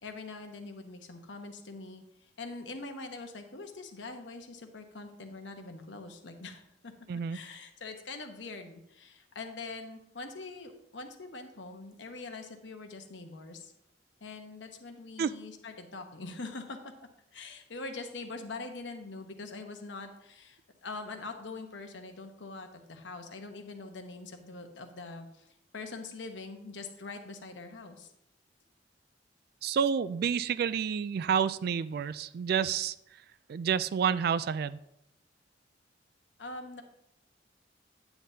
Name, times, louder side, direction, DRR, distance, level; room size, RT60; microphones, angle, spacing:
voice 1, 0.0-2.0 2.4-6.9 7.3-13.7 14.2-16.8 17.3-25.3 25.7-28.1 36.4-36.8, left 3 dB, 80° left, 5 dB, 1.0 m, -43 dB
voice 2, 29.6-32.9 33.5-34.8, right 7 dB, 55° right, 16 dB, 0.3 m, -29 dB
9.2 x 8.2 x 2.8 m, 0.80 s
head